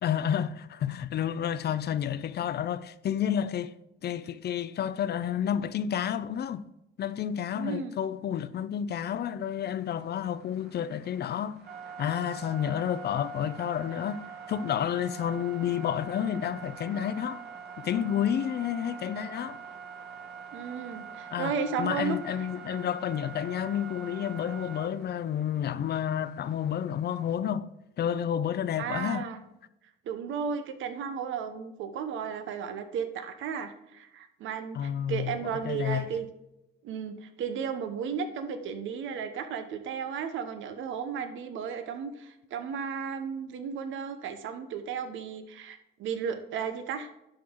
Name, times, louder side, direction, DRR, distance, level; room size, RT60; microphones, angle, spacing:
voice 1, 0.0-3.7 4.0-6.6 7.0-11.6 12.0-17.4 17.8-19.6 21.3-27.7 28.0-29.2 34.7-35.4 35.6-36.1, left 9 dB, 55° left, 0.5 m, -30 dB
voice 2, 7.5-7.9 20.5-22.2 28.8-29.4 30.0-36.3 36.8-47.1, right 6 dB, 80° right, 1.0 m, -34 dB
sound 1, 9.8-27.3, right 7 dB, 55° right, 2.4 m, -45 dB
11.5 x 4.5 x 3.8 m
cardioid pair, 90°, 20 cm